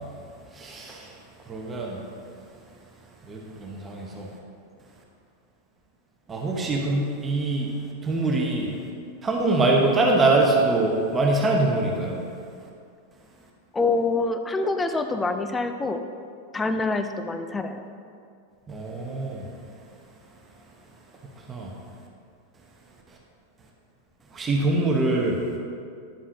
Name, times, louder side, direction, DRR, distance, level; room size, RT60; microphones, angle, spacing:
voice 1, 0.5-1.1 1.5-2.0 3.3-4.3 6.3-7.7 8.0-8.7 9.2-12.2 18.7-19.5 21.5-21.7 24.3-25.4, right 2 dB, 20° right, -1 dB, 1.0 m, -23 dB
voice 2, 13.7-16.0 16.5-17.8, left 3 dB, 15° left, 8 dB, 0.5 m, -26 dB
10.0 x 7.3 x 2.8 m, 2.3 s
figure-of-eight pair, 90°, 0 cm